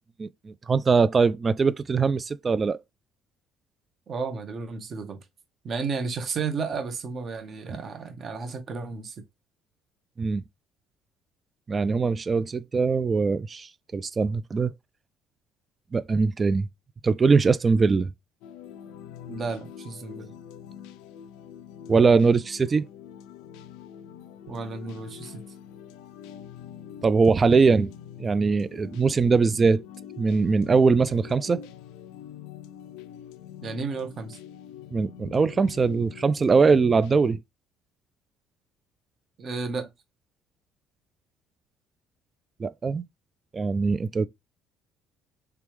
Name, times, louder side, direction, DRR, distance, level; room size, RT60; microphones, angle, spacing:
voice 1, 0.7-2.8 10.2-10.4 11.7-14.7 15.9-16.7 17.0-18.1 21.9-22.9 27.0-27.9 28.2-29.8 30.2-31.7 34.9-37.4 42.6-43.0 43.5-44.3, right 4 dB, 35° right, 0.3 m, -21 dB
voice 2, 4.1-5.2 5.6-9.1 19.3-20.3 24.5-25.4 33.6-34.4 39.4-39.9, right 4 dB, 50° right, 1.1 m, -32 dB
sound 1, 18.4-37.3, left 9 dB, 80° left, 0.3 m, -44 dB
3.4 x 3.3 x 3.1 m
hypercardioid pair, 65°, 0 cm